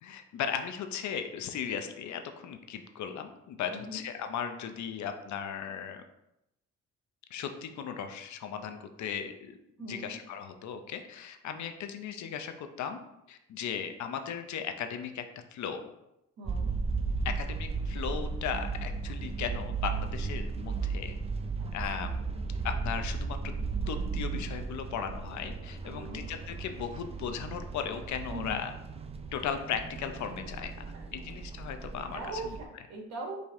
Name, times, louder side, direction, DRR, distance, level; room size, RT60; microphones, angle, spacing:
voice 1, 0.0-6.0 7.3-9.6 9.9-13.0 13.3-15.2 15.5-15.9 17.2-21.1 21.7-22.2 22.6-23.4 23.9-28.7 29.3-30.7 31.1-32.6, left 7 dB, 70° left, 7 dB, 0.6 m, -37 dB
voice 2, 3.7-4.0 9.8-10.1 16.4-16.7 21.6-21.7 22.0-22.4 25.8-26.3 28.3-28.6 30.9-31.4 32.1-33.5, right 2 dB, 60° right, 0 dB, 1.3 m, -41 dB
sound 1, 16.5-32.7, right 4 dB, 20° right, 0.4 m, -35 dB
5.0 x 2.7 x 3.5 m, 0.85 s
cardioid pair, 90°, 30 cm